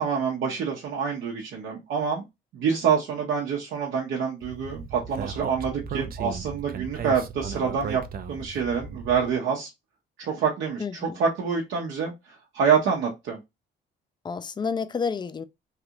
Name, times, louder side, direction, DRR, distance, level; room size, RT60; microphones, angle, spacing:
voice 1, 0.0-2.2 2.5-8.0 8.3-9.7 10.2-13.4, right 6 dB, 80° right, 0.8 m, -26 dB
Speech, 4.4-9.3, right 6 dB, 50° right, 0.5 m, -36 dB
voice 2, 10.8-11.2 14.2-15.4, left 5 dB, 20° left, 0.4 m, -30 dB
3.2 x 2.4 x 2.8 m
cardioid pair, 90°, 20 cm